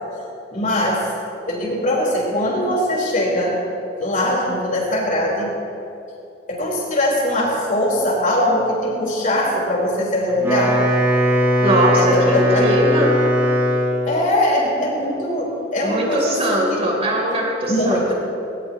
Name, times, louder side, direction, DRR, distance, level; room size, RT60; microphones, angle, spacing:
voice 1, 0.5-1.1 1.5-3.6 4.0-5.5 6.5-10.7 12.0-12.7 14.1-16.8 17.6-18.1, left 1 dB, 45° left, -3 dB, 4.5 m, -21 dB
Wind instrument woodwind instrument, 10.3-14.1, equal, 15° right, 4.4 m, -19 dB
voice 2, 11.6-13.2 15.8-18.1, right 1 dB, 35° right, -2 dB, 3.6 m, -20 dB
20.0 x 19.5 x 3.1 m, 2.8 s
head